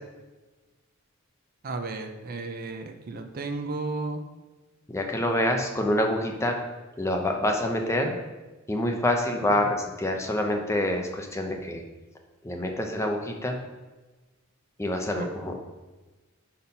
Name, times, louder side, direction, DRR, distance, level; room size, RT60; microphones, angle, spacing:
voice 1, 1.6-4.2 15.1-15.3, right 3 dB, 45° right, 6 dB, 0.5 m, -33 dB
voice 2, 4.9-6.5 7.0-8.1 8.7-11.8 12.4-13.6 14.8-15.6, left 1 dB, 15° left, 2 dB, 0.7 m, -26 dB
5.5 x 4.4 x 5.3 m, 1.2 s
head